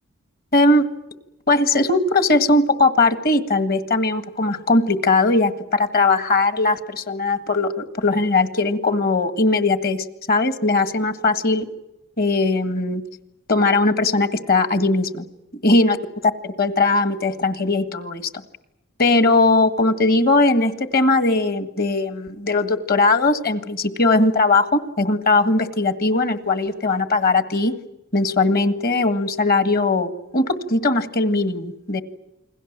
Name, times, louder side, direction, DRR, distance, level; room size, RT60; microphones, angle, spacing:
voice 1, 0.5-0.9 1.5-11.7 12.2-13.0 13.5-15.2 15.6-16.0 16.6-18.2 19.0-27.7 28.1-32.0, left 2 dB, 45° left, 11 dB, 1.8 m, -19 dB
29.0 x 21.5 x 7.5 m, 0.94 s
head